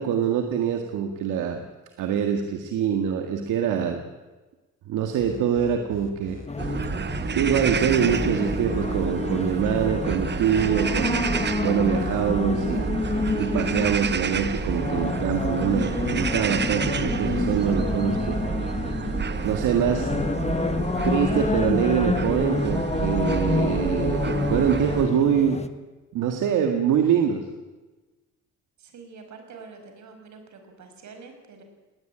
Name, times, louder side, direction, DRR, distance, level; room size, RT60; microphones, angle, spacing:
voice 1, 0.0-1.6 2.0-4.0 4.9-6.4 7.3-12.9 13.4-18.4 19.4-20.1 21.0-25.6 26.1-27.5, right 8 dB, 85° right, 5 dB, 1.9 m, -24 dB
sound 1, 5.2-20.1, left 4 dB, 40° left, 3.4 m, -42 dB
sound 2, 6.5-25.7, left 3 dB, 20° left, 1.5 m, -29 dB
sound 3, 6.6-25.1, right 5 dB, 35° right, 1.2 m, -30 dB
voice 2, 28.8-31.6, right 4 dB, 70° right, 5 dB, 5.6 m, -46 dB
20.0 x 19.0 x 8.9 m, 1.2 s
cardioid pair, 90°, 30 cm